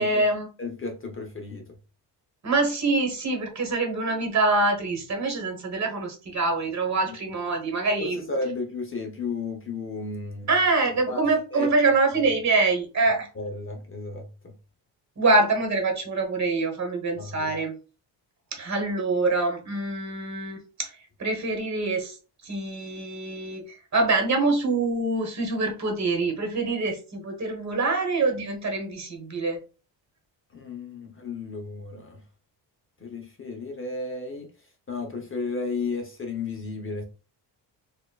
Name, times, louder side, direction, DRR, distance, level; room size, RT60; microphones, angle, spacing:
voice 1, 0.0-0.5 2.4-8.2 10.5-13.3 15.2-17.7 18.5-20.9 21.2-22.1 22.4-23.6 23.9-29.6, right 3 dB, 35° right, 1.2 m, -25 dB
voice 2, 0.6-1.6 7.1-7.2 8.0-10.5 11.1-11.7 12.1-12.3 13.3-14.5 17.2-17.5 30.5-32.2 33.0-34.5 34.9-37.0, left 3 dB, 30° left, 0.7 m, -33 dB
4.2 x 2.4 x 2.3 m
cardioid pair, 100°, 45 cm